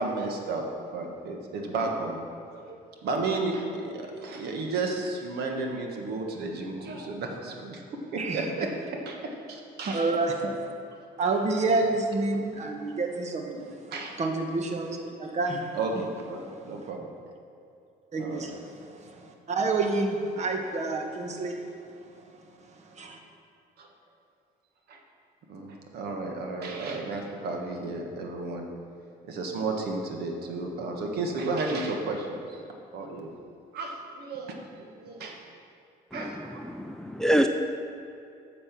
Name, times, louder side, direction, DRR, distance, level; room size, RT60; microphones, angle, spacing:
voice 1, 0.0-2.2 2.5-7.8 8.1-10.1 12.3-12.4 13.9-14.2 15.7-17.1 18.2-18.5 23.8-23.9 24.9-25.0 25.5-28.7 29.2-32.6 32.9-33.3 33.7-35.4 36.1-36.6, right 3 dB, 70° right, 2 dB, 1.4 m, -33 dB
voice 2, 9.9-10.7 11.2-13.8 14.2-15.8 18.1-21.9 22.2-23.2, right 3 dB, 40° right, 4 dB, 1.2 m, -29 dB
voice 3, 36.1-37.5, equal, 5° left, 6 dB, 0.4 m, -26 dB
8.7 x 6.7 x 5.9 m, 2.6 s
cardioid pair, 110°, 17 cm